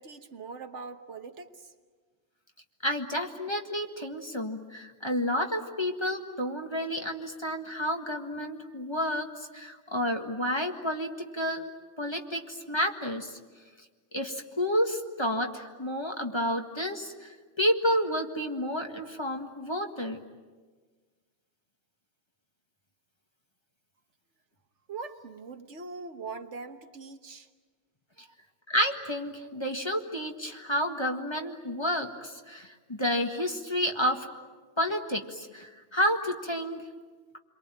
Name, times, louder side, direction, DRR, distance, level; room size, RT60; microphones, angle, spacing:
voice 1, 0.0-1.7 24.9-27.5 28.2-28.3, right 4 dB, 70° right, 7 dB, 1.5 m, -42 dB
voice 2, 2.8-11.7 12.0-13.4 14.1-20.2 28.7-34.3 34.8-36.8, equal, 20° left, 3 dB, 1.8 m, -30 dB
28.5 x 23.0 x 9.0 m, 1.4 s
omnidirectional pair, 1.3 m